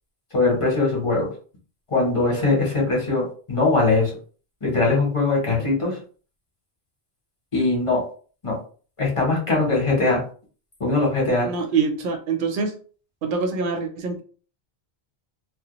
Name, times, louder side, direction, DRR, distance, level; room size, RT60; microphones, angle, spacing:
voice 1, 0.3-1.3 1.9-4.1 4.6-6.0 7.5-8.0 8.4-8.6 9.0-10.2 10.8-11.5, left 3 dB, 35° left, -2 dB, 0.8 m, -21 dB
voice 2, 11.4-12.8 13.2-14.2, right 5 dB, 60° right, 3 dB, 0.6 m, -25 dB
2.1 x 2.0 x 2.8 m, 0.40 s
omnidirectional pair, 1.1 m